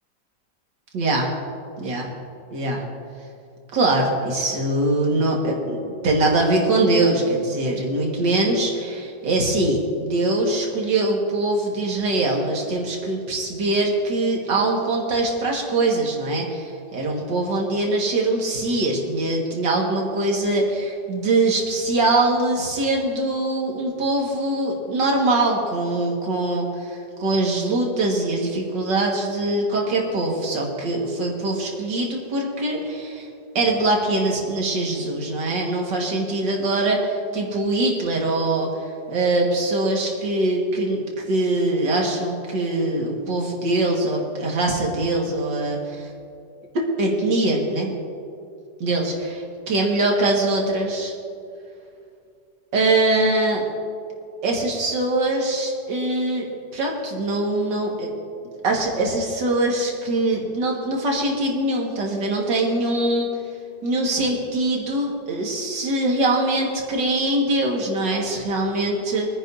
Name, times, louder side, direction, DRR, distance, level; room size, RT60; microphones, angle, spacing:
voice 1, 0.9-1.3 1.8-2.1 2.5-2.8 3.7-33.3 33.6-38.7 39.1-41.0 41.3-46.1 46.7-47.9 48.8-51.1 52.7-53.6 54.4-56.5 56.7-58.1 58.6-63.3 63.8-69.3, right 2 dB, 80° right, -1 dB, 2.4 m, -22 dB
24.0 x 9.8 x 2.7 m, 2.5 s
omnidirectional pair, 1.9 m